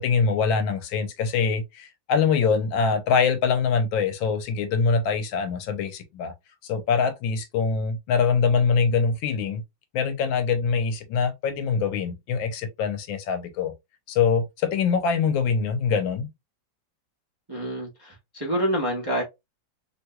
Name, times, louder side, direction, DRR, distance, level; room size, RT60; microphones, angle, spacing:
voice 1, 0.0-6.3 6.6-9.6 9.9-13.7 14.1-16.3, left 5 dB, 80° left, 1.5 m, -24 dB
voice 2, 17.5-19.2, equal, 20° right, 0.6 m, -27 dB
3.3 x 3.0 x 2.2 m
omnidirectional pair, 2.1 m